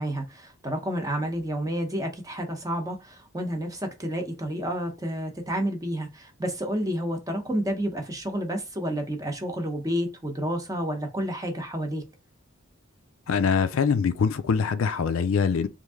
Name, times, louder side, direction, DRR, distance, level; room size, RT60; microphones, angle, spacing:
voice 1, 0.0-12.0, equal, 15° right, 0.7 m, -30 dB
voice 2, 13.3-15.7, left 6 dB, 70° left, 0.4 m, -23 dB
3.2 x 2.6 x 3.6 m
head